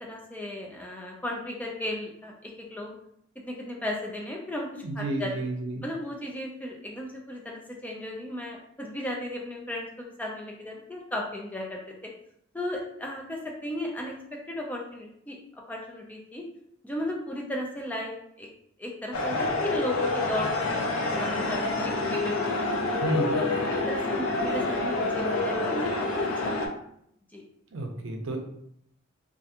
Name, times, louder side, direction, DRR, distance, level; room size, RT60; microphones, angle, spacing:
voice 1, 0.0-2.9 3.4-5.3 5.8-11.8 12.5-14.2 14.5-15.4 15.7-16.4 16.8-18.5 18.8-22.5 23.2-23.5 23.9-26.7 27.3-27.4, left 1 dB, 10° left, -1 dB, 0.3 m, -35 dB
voice 2, 4.8-5.8 23.0-23.4 27.7-28.4, right 2 dB, 70° right, 2 dB, 0.5 m, -31 dB
sound 1, 19.1-26.7, left 2 dB, 80° left, 0.4 m, -27 dB
2.4 x 2.3 x 2.7 m, 0.72 s
head